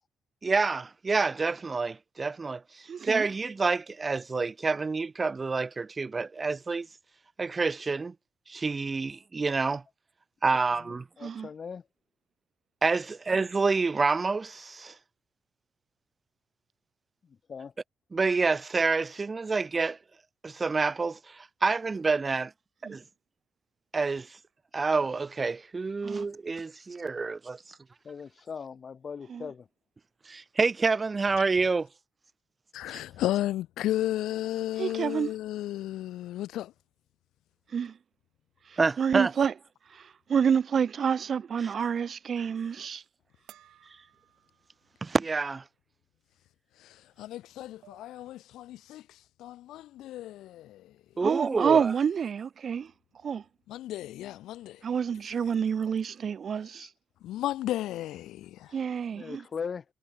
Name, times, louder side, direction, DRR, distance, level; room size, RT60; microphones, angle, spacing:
voice 1, 0.4-6.9 7.4-8.1 8.5-9.8 10.4-11.1 12.8-14.9 18.1-20.0 20.4-22.5 22.9-23.0 23.9-24.3 24.7-27.6 30.3-31.9 38.8-39.3 41.6-41.7 42.4-42.5 45.0-45.6 51.2-51.9, right 4 dB, 30° right, 0.8 m, -28 dB
voice 2, 2.9-3.3 11.2-11.5 22.8-23.0 26.0-26.3 29.3-29.5 34.8-35.3 37.7-37.9 39.0-39.5 39.9-40.0 40.3-43.0 51.2-52.9 53.2-53.4 54.8-56.9 58.7-59.4, right 7 dB, 50° right, 0.4 m, -28 dB
voice 3, 10.8-11.8 17.5-17.7 28.0-29.7 59.1-59.8, left 6 dB, 45° left, 2.3 m, -39 dB
voice 4, 32.7-36.7 46.8-50.9 53.7-54.8 56.8-56.9 57.2-58.8, left 14 dB, 85° left, 0.6 m, -34 dB
sound 1, 43.5-45.1 45.5-45.6 47.1-47.2 47.6-48.2, right 13 dB, 80° right, 6.2 m, -58 dB
cardioid pair, 90°, 0 cm